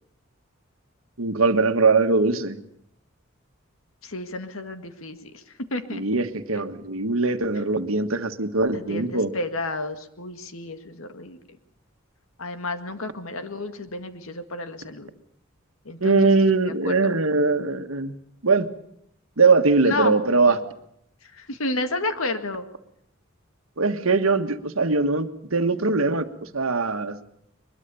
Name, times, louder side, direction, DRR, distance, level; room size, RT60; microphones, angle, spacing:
voice 1, 1.2-2.6 5.9-9.3 16.0-18.1 18.4-18.7 19.4-20.6 23.8-26.3 26.5-27.2, right 3 dB, 85° right, 8 dB, 1.5 m, -21 dB
voice 2, 4.0-6.0 8.7-11.4 12.4-15.1 15.9-16.4 16.8-17.1 19.8-20.1 20.5-20.6 21.2-22.7, left 2 dB, 85° left, 9 dB, 2.0 m, -31 dB
22.5 x 21.5 x 7.0 m, 0.73 s
head